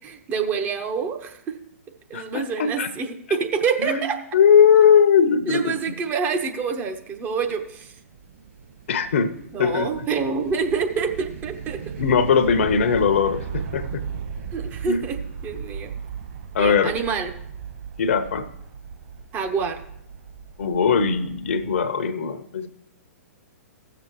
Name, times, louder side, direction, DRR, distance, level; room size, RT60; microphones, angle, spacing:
voice 1, 0.0-1.6 2.1-4.2 5.5-7.9 9.5-11.8 14.5-15.9 16.6-17.3 19.3-19.8, right 5 dB, 20° right, 5 dB, 0.8 m, -27 dB
voice 2, 2.1-2.9 3.8-4.0 4.3-5.8 8.9-9.3 9.6-9.9 12.0-14.0 14.9-15.0 16.5-16.9 18.0-18.5 20.6-22.7, left 7 dB, 55° left, 11 dB, 0.8 m, -19 dB
sound 1, 6.3-21.9, right 6 dB, 45° right, 2.0 m, -37 dB
16.0 x 6.8 x 3.1 m, 0.74 s
figure-of-eight pair, 115°, 8 cm